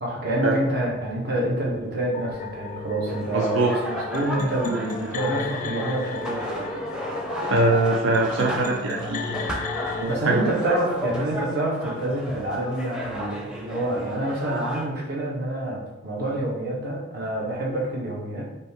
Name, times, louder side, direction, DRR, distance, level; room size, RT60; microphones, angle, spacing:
voice 1, 0.0-6.5 10.1-18.4, right 1 dB, 55° right, -3 dB, 1.3 m, -27 dB
sound 1, 2.1-10.1, left 4 dB, 40° left, 0.3 m, -35 dB
sound 2, 3.1-14.9, equal, 5° right, 0.7 m, -33 dB
voice 2, 3.3-3.7 7.4-9.4 10.0-10.4, right 2 dB, 85° right, 1 dB, 0.5 m, -22 dB
5.1 x 2.8 x 3.6 m, 0.97 s
head